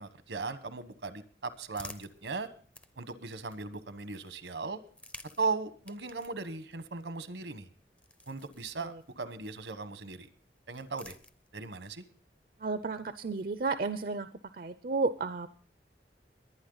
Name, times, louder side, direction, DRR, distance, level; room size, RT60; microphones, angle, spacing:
voice 1, 0.0-2.5 3.0-4.8 5.4-7.7 8.3-10.3 10.7-11.2 11.5-12.0, right 4 dB, 80° right, 11 dB, 1.2 m, -37 dB
sound 1, 1.0-4.0 4.8-9.4 10.3-11.8, left 2 dB, 5° left, 0.5 m, -54 dB
voice 2, 12.6-14.3 14.5-15.5, right 3 dB, 50° right, 11 dB, 0.5 m, -32 dB
22.0 x 9.3 x 3.9 m, 0.43 s
head